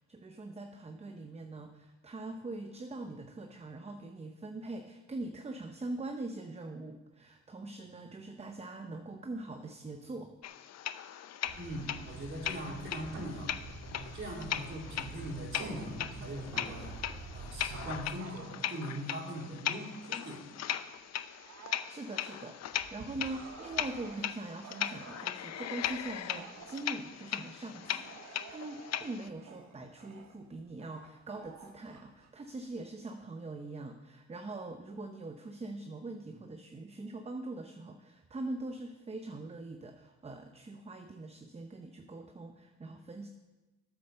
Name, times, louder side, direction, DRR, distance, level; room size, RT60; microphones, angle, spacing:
voice 1, 0.1-10.3 21.9-43.3, right 2 dB, 20° right, 5 dB, 0.8 m, -42 dB
sound 1, 10.4-29.3, left 10 dB, 60° left, 0.6 m, -39 dB
sound 2, 11.4-18.0, right 3 dB, 85° right, 3.2 m, -46 dB
voice 2, 11.6-13.5 14.0-17.0 17.3-20.4, equal, 45° right, -5 dB, 3.9 m, -41 dB
Bark / Growling, 14.0-20.5 21.0-32.9, right 5 dB, 60° right, 1.5 m, -53 dB
8.9 x 8.0 x 6.8 m, 1.1 s
cardioid pair, 90°, 30 cm